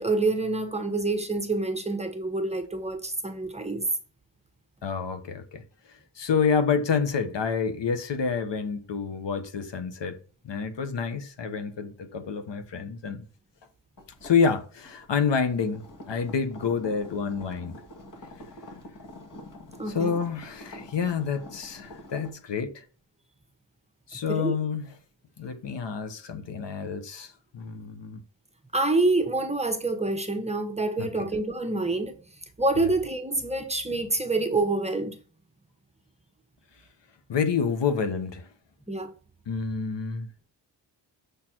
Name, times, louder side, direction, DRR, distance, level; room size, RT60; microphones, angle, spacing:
voice 1, 0.0-3.9 19.8-20.2 24.1-24.5 28.7-32.2 32.6-35.2 38.9-39.1, right 2 dB, 15° right, 1.1 m, -27 dB
voice 2, 4.8-5.6 6.2-10.2 10.4-13.2 14.2-17.8 19.9-22.8 24.1-24.8 25.4-28.2 31.0-31.1 37.3-38.5 39.5-40.3, left 6 dB, 65° left, 1.1 m, -28 dB
sound 1, 14.0-22.3, left 1 dB, 40° left, 2.0 m, -46 dB
7.2 x 4.4 x 4.5 m
wide cardioid pair, 100°, 47 cm